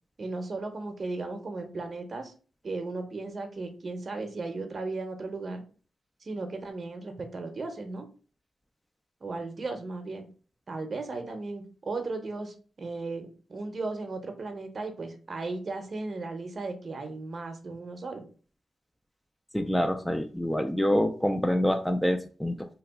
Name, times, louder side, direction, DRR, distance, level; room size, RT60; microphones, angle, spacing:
voice 1, 0.2-2.3 2.6-5.6 6.2-8.1 9.2-10.2 10.7-18.3, right 3 dB, 45° right, 6 dB, 0.7 m, -36 dB
voice 2, 19.5-22.7, equal, 5° left, 7 dB, 0.3 m, -26 dB
2.9 x 2.3 x 3.4 m, 0.38 s
cardioid pair, 75°, 0 cm